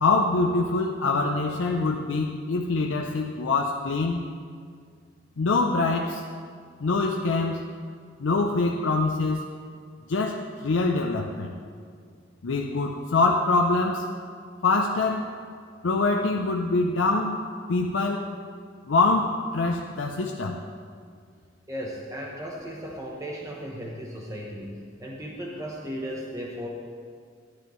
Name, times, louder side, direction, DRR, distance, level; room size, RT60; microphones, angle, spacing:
voice 1, 0.0-4.3 5.4-6.2 6.8-7.7 8.2-9.4 10.1-11.5 12.4-14.1 14.6-15.3 15.8-17.4 17.7-18.3 18.9-20.6, left 3 dB, 80° left, 1 dB, 0.5 m, -24 dB
voice 2, 21.7-26.7, equal, 15° right, -2 dB, 0.8 m, -36 dB
12.0 x 9.7 x 3.1 m, 2.1 s
head